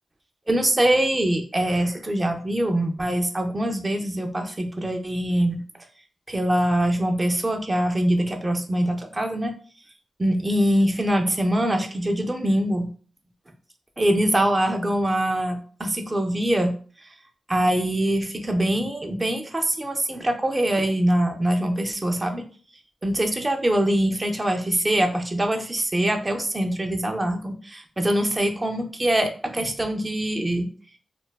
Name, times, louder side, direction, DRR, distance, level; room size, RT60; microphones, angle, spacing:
voice 1, 0.5-5.6 6.3-9.5 10.2-12.9 14.0-16.7 17.5-22.4 23.0-30.7, right 1 dB, 20° right, 4 dB, 0.4 m, -23 dB
2.6 x 2.2 x 2.2 m, 0.41 s
wide cardioid pair, 105°, 0 cm